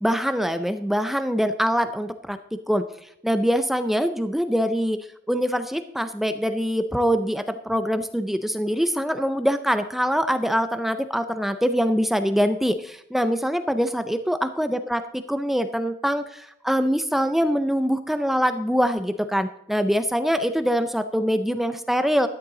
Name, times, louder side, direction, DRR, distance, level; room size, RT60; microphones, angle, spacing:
voice 1, 0.0-22.3, equal, ahead, 9 dB, 0.4 m, -24 dB
12.5 x 9.8 x 3.8 m, 0.77 s
head